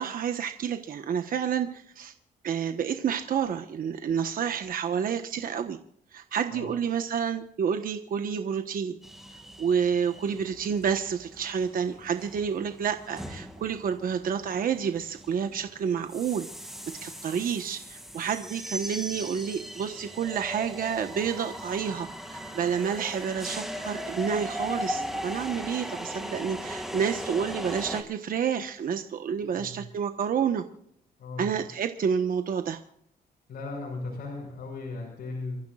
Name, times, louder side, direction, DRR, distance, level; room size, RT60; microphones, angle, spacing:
voice 1, 0.0-2.1 2.4-5.8 6.1-9.0 9.6-16.5 17.0-30.6 31.4-32.8, right 7 dB, 60° right, 7 dB, 1.2 m, -29 dB
sound 1, 9.0-28.0, equal, ahead, 2.4 m, -39 dB
voice 2, 29.4-29.9 31.2-31.7 33.5-35.6, left 3 dB, 70° left, -2 dB, 6.2 m, -37 dB
28.5 x 14.5 x 2.5 m, 0.68 s
cardioid pair, 125°, 16 cm